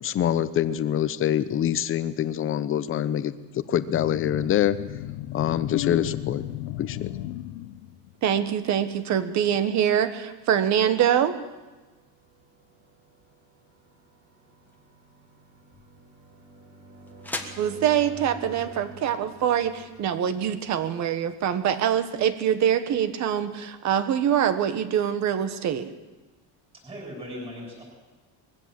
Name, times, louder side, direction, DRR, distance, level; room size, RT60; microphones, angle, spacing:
voice 1, 0.0-4.8 5.3-6.4 6.8-7.1, left 10 dB, 30° left, 13 dB, 0.8 m, -25 dB
sound 1, 3.9-8.1, left 16 dB, 90° left, 0.9 m, -34 dB
voice 2, 8.2-11.4 17.6-25.9, right 9 dB, 40° right, 11 dB, 1.5 m, -24 dB
sound 2, 11.4-21.9, right 2 dB, 70° right, 7.7 m, -49 dB
sound 3, 14.6-20.5, left 2 dB, 5° left, 1.4 m, -43 dB
voice 3, 26.7-27.8, equal, 10° right, -4 dB, 7.1 m, -38 dB
21.5 x 16.0 x 7.7 m, 1.2 s
cardioid pair, 170°, 42 cm